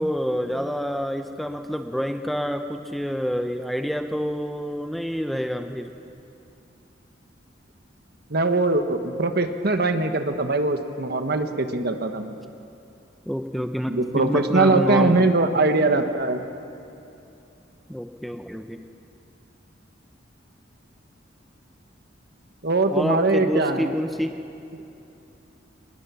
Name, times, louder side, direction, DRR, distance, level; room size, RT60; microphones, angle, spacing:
voice 1, 0.0-5.9 13.3-15.3 17.9-18.8 22.9-24.4, equal, ahead, 6 dB, 0.7 m, -27 dB
voice 2, 8.3-12.3 13.9-16.4 22.6-23.9, right 2 dB, 55° right, 7 dB, 1.3 m, -22 dB
23.0 x 20.0 x 7.0 m, 2.8 s
head